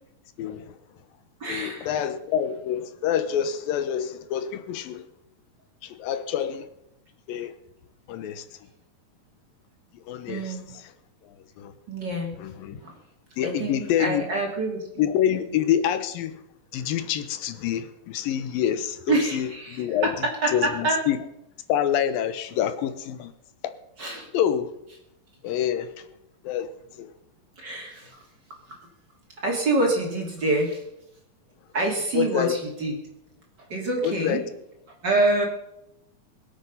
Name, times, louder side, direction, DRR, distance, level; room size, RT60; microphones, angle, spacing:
voice 1, 0.4-0.7 1.5-5.1 5.8-6.7 7.3-7.5 8.1-8.5 10.1-10.6 11.6-11.7 12.4-12.8 13.4-14.2 15.0-16.4 16.7-20.1 20.5-21.2 21.7-23.3 24.3-24.7 25.4-25.9 26.4-26.7 27.0-27.1 32.1-32.6 34.0-34.5, left 10 dB, 85° left, 2.8 m, -26 dB
voice 2, 1.4-2.0 10.3-10.7 11.9-12.3 12.8-13.0 13.4-15.4 19.1-21.0 24.0-24.3 27.6-28.2 28.6-28.8 29.4-30.8 31.7-33.0 33.6-34.4 35.0-35.4, right 2 dB, 30° right, 3.1 m, -26 dB
22.5 x 8.3 x 5.6 m
omnidirectional pair, 4.0 m